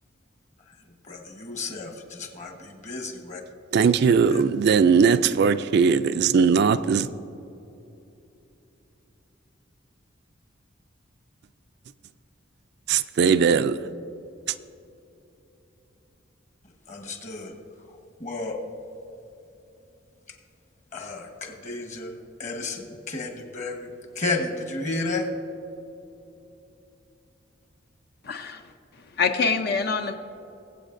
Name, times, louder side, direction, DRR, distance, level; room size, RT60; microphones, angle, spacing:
voice 1, 0.6-3.4 4.3-4.4 16.9-17.6 17.9-18.6 20.3-20.4 20.9-23.9 24.1-25.3, left 2 dB, 40° left, 1.2 m, -33 dB
voice 2, 3.7-7.1 12.9-13.8, right 6 dB, 55° right, 0.3 m, -19 dB
voice 3, 28.2-28.7 29.2-30.1, left 4 dB, 55° left, 0.5 m, -25 dB
21.5 x 8.0 x 2.6 m
head